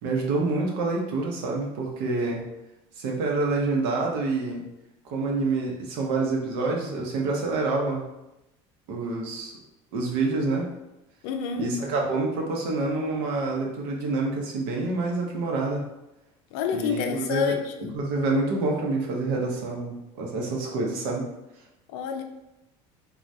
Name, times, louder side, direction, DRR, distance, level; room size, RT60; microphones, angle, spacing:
voice 1, 0.0-2.4 3.0-4.6 5.0-8.0 8.9-9.5 9.9-10.7 11.6-15.8 16.7-17.5 17.9-21.2, right 3 dB, 75° right, -1 dB, 0.8 m, -27 dB
voice 2, 11.2-11.7 16.5-18.0 21.9-22.2, left 7 dB, 75° left, 5 dB, 0.4 m, -28 dB
3.3 x 2.3 x 2.6 m, 0.93 s
supercardioid pair, 125°, 14 cm